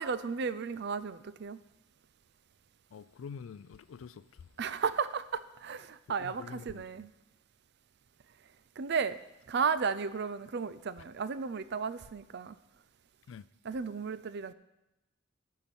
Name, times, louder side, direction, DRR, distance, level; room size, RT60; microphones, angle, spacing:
voice 1, 0.0-1.6 4.6-7.1 8.8-9.2 9.5-12.6 13.6-14.5, right 5 dB, 60° right, 0.5 m, -34 dB
voice 2, 2.9-4.2 6.2-6.8 13.3-13.4, left 6 dB, 85° left, 0.4 m, -46 dB
9.2 x 5.8 x 7.0 m
head